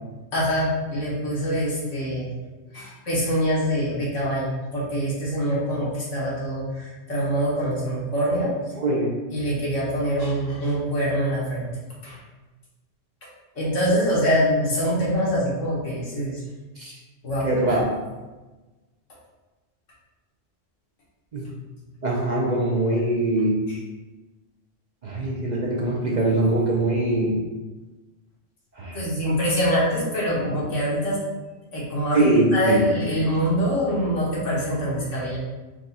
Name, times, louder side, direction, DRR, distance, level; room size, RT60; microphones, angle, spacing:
voice 1, 0.3-2.3 2.7-8.7 9.3-11.7 12.0-12.2 13.6-16.4 17.2-17.8 23.7-23.8 28.9-31.2 31.7-32.2 32.5-35.4, equal, 80° left, -6 dB, 1.7 m, -24 dB
voice 2, 8.8-9.1 16.8-16.9 17.4-17.8 21.3-21.5 22.0-23.6 25.0-27.4 28.7-29.0 30.4-30.6 32.1-32.8, right 2 dB, 45° right, -3 dB, 0.7 m, -22 dB
4.6 x 2.4 x 4.1 m, 1.2 s
omnidirectional pair, 1.3 m